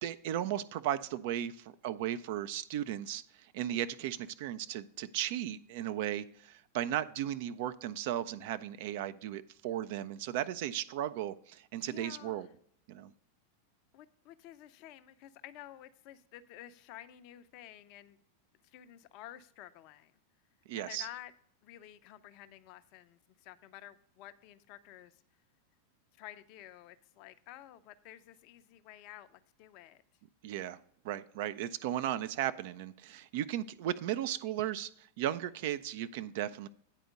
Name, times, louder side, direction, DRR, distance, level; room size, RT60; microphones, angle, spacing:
voice 1, 0.0-3.2 3.5-12.5 12.9-13.1 20.7-21.1 30.4-30.8 31.0-36.7, right 11 dB, 50° right, 12 dB, 0.4 m, -36 dB
voice 2, 11.8-12.5 13.9-18.2 18.6-20.2 20.8-21.3 21.6-25.2 26.2-30.0, left 13 dB, 45° left, 12 dB, 0.5 m, -51 dB
9.0 x 4.3 x 6.4 m, 0.66 s
figure-of-eight pair, 90°, 0 cm